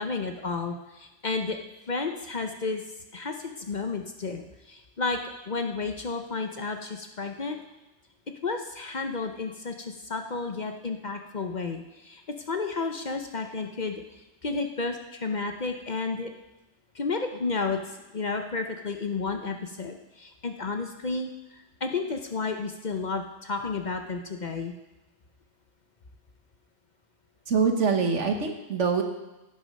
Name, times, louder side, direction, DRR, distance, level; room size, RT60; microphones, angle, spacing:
voice 1, 0.0-1.6 1.9-2.8 3.1-5.2 5.5-7.6 8.4-14.0 14.4-16.3 16.9-24.7, left 4 dB, 45° left, 5 dB, 0.8 m, -32 dB
voice 2, 27.5-29.0, right 5 dB, 75° right, 4 dB, 1.6 m, -24 dB
16.0 x 6.2 x 5.3 m, 1.0 s
omnidirectional pair, 1.2 m